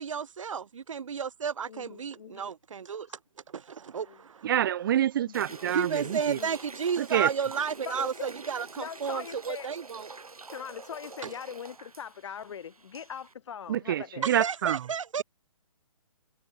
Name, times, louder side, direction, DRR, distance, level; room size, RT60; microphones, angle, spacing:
voice 1, 0.0-3.1 3.5-4.5 5.7-10.1 11.2-11.3 14.2-15.2, right 6 dB, 65° right, 1.9 m, -32 dB
voice 2, 1.7-2.4 4.0-4.2 6.0-6.5 7.8-8.3 8.8-9.7 10.5-14.3, left 8 dB, 55° left, 7.4 m, -41 dB
voice 3, 4.4-6.4 7.0-7.3 13.7-14.9, right 11 dB, 40° right, 0.8 m, -27 dB
sound 1, 5.3-13.3, right 3 dB, 90° right, 6.2 m, -46 dB
hypercardioid pair, 150°, 18 cm